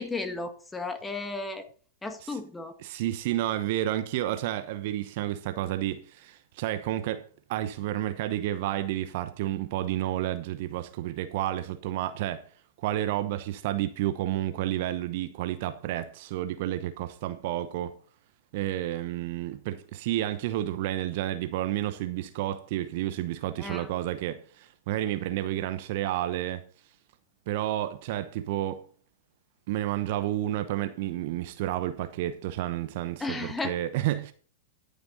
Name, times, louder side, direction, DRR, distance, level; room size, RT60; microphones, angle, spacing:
voice 1, 0.0-1.7 2.0-2.7 23.6-23.9 33.2-33.7, left 3 dB, 10° left, 1.7 m, -34 dB
voice 2, 2.8-7.2 7.5-12.4 12.8-17.9 18.5-26.6 27.5-28.8 29.7-34.3, right 13 dB, 50° right, 1.0 m, -30 dB
13.5 x 7.0 x 4.1 m
figure-of-eight pair, 100°, 0 cm